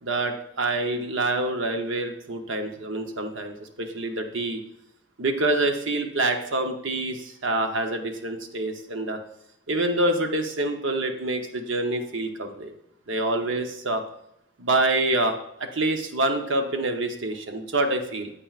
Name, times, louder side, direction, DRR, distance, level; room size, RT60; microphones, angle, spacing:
voice 1, 0.0-4.6 5.2-9.2 9.7-12.7 13.1-14.0 14.6-15.3 15.6-18.3, right 2 dB, 70° right, 5 dB, 0.8 m, -26 dB
8.9 x 8.4 x 2.4 m, 0.78 s
head